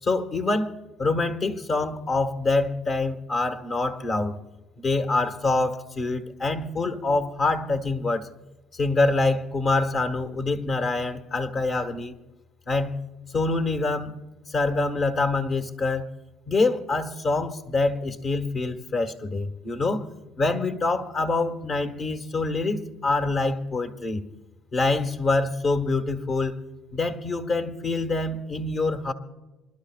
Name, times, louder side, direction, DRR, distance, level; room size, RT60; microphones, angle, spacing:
voice 1, 0.0-0.7 1.0-4.4 4.8-8.3 8.7-12.2 12.7-13.0 13.3-14.1 14.5-16.1 16.5-20.0 20.4-24.2 24.7-26.6 26.9-29.1, left 3 dB, 45° left, 1.7 m, -25 dB
25.5 x 12.0 x 2.5 m
supercardioid pair, 75°, 0 cm